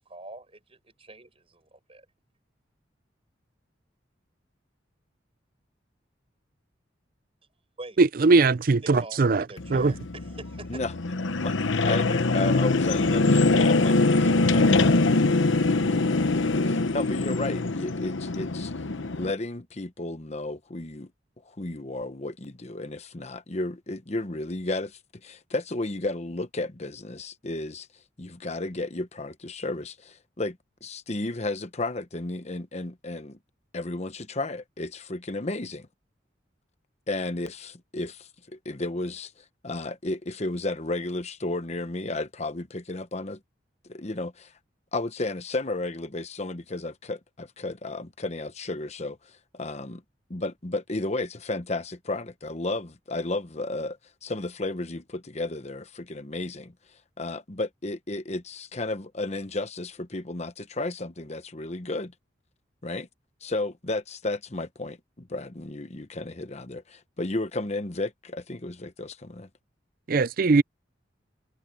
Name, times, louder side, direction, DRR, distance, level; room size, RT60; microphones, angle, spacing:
voice 1, 0.0-2.1 7.8-8.0 8.5-10.8, right 2 dB, 30° right, 7.7 m, -45 dB
voice 2, 8.0-9.4 9.7-9.9 14.6-14.7 70.1-70.6, right 3 dB, 50° right, 0.5 m, -20 dB
sound 1, 9.6-19.3, left 3 dB, 90° left, 1.0 m, -23 dB
voice 3, 11.4-15.3 15.7-18.7 19.2-21.1 21.4-27.9 28.2-33.4 33.7-35.9 37.1-43.4 43.8-44.5 44.9-50.0 50.3-56.7 57.2-62.1 62.8-63.1 63.4-69.5, left 2 dB, 35° left, 1.1 m, -33 dB
head